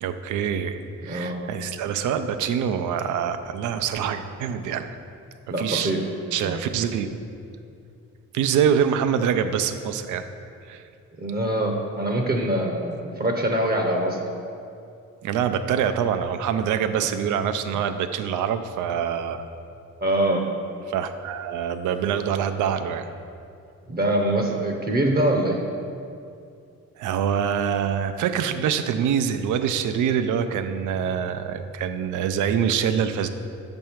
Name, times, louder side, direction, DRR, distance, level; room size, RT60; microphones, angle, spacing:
voice 1, 0.0-5.0 5.6-5.9 6.3-7.1 8.3-10.3 10.7-10.8 15.2-19.4 20.9-23.1 27.0-33.3, right 8 dB, 80° right, 10 dB, 0.5 m, -25 dB
voice 2, 1.1-1.4 5.5-6.0 6.4-6.6 11.2-14.2 17.0-17.1 20.0-20.4 23.9-25.6, right 1 dB, 30° right, 2 dB, 0.8 m, -24 dB
6.4 x 5.3 x 4.4 m, 2.5 s
cardioid pair, 90°, 30 cm